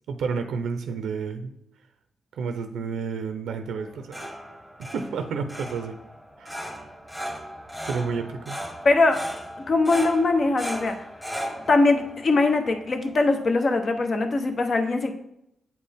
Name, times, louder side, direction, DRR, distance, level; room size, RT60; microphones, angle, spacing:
voice 1, 0.1-1.5 2.3-4.2 4.8-6.0 6.4-6.6 7.8-8.6, right 5 dB, 85° right, 7 dB, 0.6 m, -30 dB
sound 1, 3.8-13.5, equal, 5° left, 1.2 m, -37 dB
voice 2, 8.8-9.2 9.7-11.0 11.7-15.1, left 3 dB, 50° left, 5 dB, 0.9 m, -21 dB
8.3 x 4.3 x 3.5 m, 0.79 s
cardioid pair, 90°, 0 cm